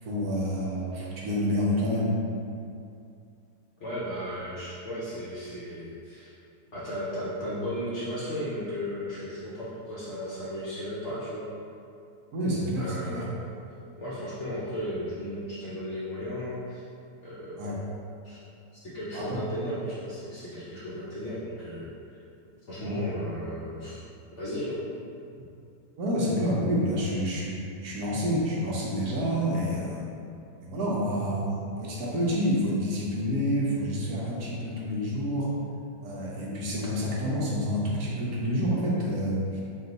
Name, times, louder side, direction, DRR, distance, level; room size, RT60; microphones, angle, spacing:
voice 1, 0.0-2.1 12.3-13.2 17.6-17.7 19.1-19.7 22.8-23.1 26.0-30.1 30.6-35.5 36.0-39.6, equal, 65° right, -5 dB, 1.2 m, -28 dB
voice 2, 3.8-6.3 6.7-11.5 12.8-13.3 14.0-16.8 17.2-17.7 18.2-18.4 18.8-22.2 22.7-24.0 24.3-24.8, equal, 60° left, -8 dB, 0.8 m, -35 dB
4.4 x 2.4 x 3.9 m, 2.6 s
omnidirectional pair, 1.9 m